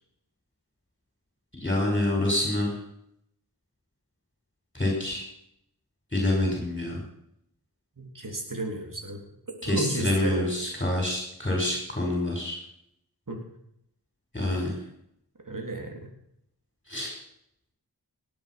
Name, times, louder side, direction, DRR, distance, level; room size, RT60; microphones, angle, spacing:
voice 1, 1.5-2.7 4.7-5.2 6.1-7.0 9.6-12.6 14.3-14.7 16.9-17.1, left 1 dB, 20° left, 0 dB, 5.6 m, -27 dB
voice 2, 8.0-9.2 9.7-10.7 13.3-13.4 14.4-14.7 15.5-16.1, right 2 dB, 55° right, 2 dB, 3.5 m, -34 dB
18.5 x 8.9 x 6.0 m, 0.75 s
wide cardioid pair, 40°, 39 cm